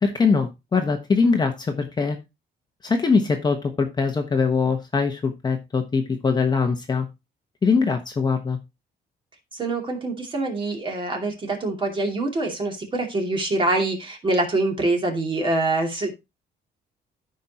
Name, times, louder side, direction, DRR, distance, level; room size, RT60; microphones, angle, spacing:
voice 1, 0.0-2.2 2.8-7.1 7.6-8.6, left 4 dB, 25° left, 5 dB, 1.1 m, -22 dB
voice 2, 9.5-16.1, right 2 dB, 30° right, 2 dB, 2.6 m, -25 dB
14.0 x 5.3 x 2.9 m, 0.24 s
cardioid pair, 150°, 18 cm